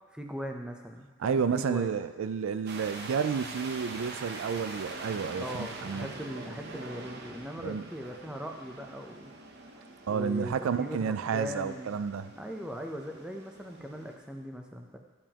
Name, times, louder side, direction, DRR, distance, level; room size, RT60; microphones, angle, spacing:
voice 1, 0.1-1.9 5.4-9.4 10.1-11.9 12.3-15.0, equal, 5° right, 2 dB, 0.5 m, -40 dB
voice 2, 1.2-6.1 7.6-7.8 10.1-12.3, right 6 dB, 80° right, 12 dB, 0.4 m, -31 dB
sound 1, 2.7-14.2, right 3 dB, 50° right, 0.7 m, -44 dB
11.0 x 7.1 x 2.9 m, 1.2 s
head